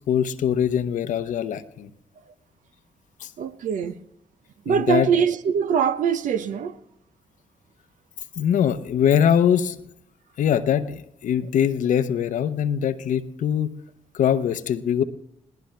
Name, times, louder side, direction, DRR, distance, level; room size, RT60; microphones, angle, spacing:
voice 1, 0.0-1.9 3.2-3.3 4.7-5.1 8.4-9.8 10.4-13.8 14.1-15.0, left 9 dB, 75° left, 0.8 m, -22 dB
voice 2, 3.4-4.0 4.7-6.7, right 7 dB, 75° right, 0.8 m, -23 dB
20.0 x 17.5 x 3.3 m
supercardioid pair, 50°, 13 cm